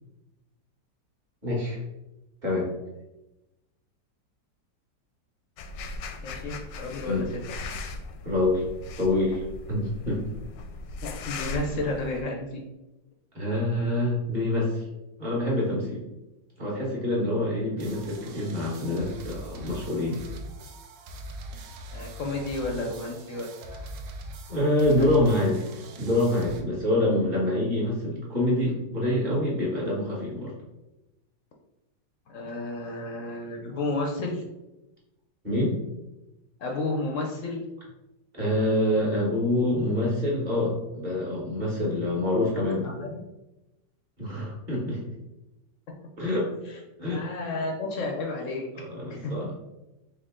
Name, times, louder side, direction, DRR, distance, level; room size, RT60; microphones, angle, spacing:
voice 1, 1.4-1.8 2.4-2.7 7.0-7.3 8.2-8.6 9.0-9.4 9.7-10.2 13.3-14.8 15.2-16.0 16.6-20.2 24.5-25.6 26.0-30.5 35.4-35.8 38.3-42.9 44.2-45.0 46.2-46.5 47.0-47.2 48.9-49.5, left 1 dB, 30° right, -5 dB, 1.4 m, -26 dB
sound 1, 5.6-12.2, left 3 dB, 85° left, 1.3 m, -38 dB
voice 2, 6.2-7.4 11.0-12.6 21.9-23.9 25.0-25.1 32.3-34.4 36.6-37.7 42.6-43.2 47.1-48.7 49.1-49.3, left 2 dB, 65° left, 2 dB, 0.8 m, -32 dB
sound 2, 17.8-26.6, right 1 dB, 80° right, 1.2 m, -42 dB
4.6 x 2.7 x 3.6 m, 0.97 s
omnidirectional pair, 1.9 m